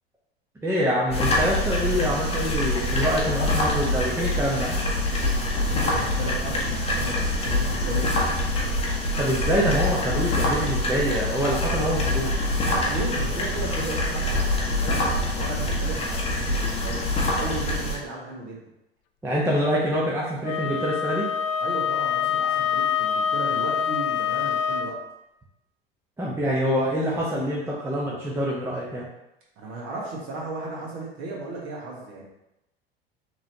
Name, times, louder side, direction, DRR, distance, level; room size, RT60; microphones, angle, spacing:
voice 1, 0.6-4.7 9.2-12.5 19.2-21.3 26.2-29.1, equal, 10° right, -5 dB, 0.8 m, -25 dB
sound 1, 1.1-18.0, left 1 dB, 20° left, 1.0 m, -25 dB
voice 2, 5.7-8.1 12.6-18.6 21.6-24.9 29.6-32.2, right 2 dB, 45° right, -4 dB, 1.7 m, -35 dB
Wind instrument woodwind instrument, 20.4-25.0, left 8 dB, 40° left, 0.4 m, -25 dB
5.9 x 3.1 x 2.8 m, 0.89 s
figure-of-eight pair, 75°, 31 cm